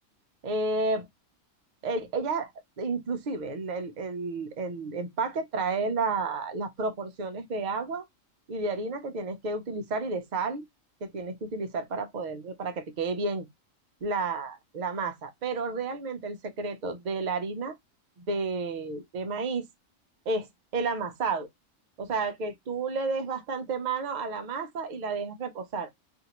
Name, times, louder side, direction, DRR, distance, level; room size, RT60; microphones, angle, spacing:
voice 1, 0.4-1.1 1.8-2.5 2.8-8.0 8.5-10.6 11.0-13.5 14.0-17.7 18.2-19.7 20.3-20.5 20.7-21.5 22.0-25.9, right 3 dB, 45° right, 0.6 m, -31 dB
2.7 x 2.5 x 2.8 m
omnidirectional pair, 1.4 m